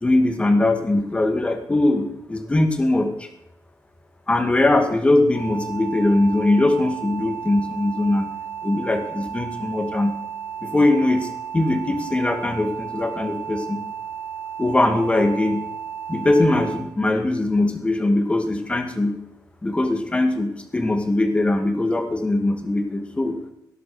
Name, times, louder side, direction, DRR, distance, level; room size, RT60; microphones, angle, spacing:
voice 1, 0.0-3.3 4.3-8.3 8.6-10.1 10.6-11.3 11.5-13.8 14.6-15.6 16.1-19.1 19.6-23.4, left 2 dB, 15° left, 6 dB, 2.0 m, -21 dB
sound 1, 5.3-16.8, right 8 dB, 65° left, 7.1 m, -34 dB
18.0 x 10.5 x 5.0 m, 0.80 s
wide cardioid pair, 140°, 7 cm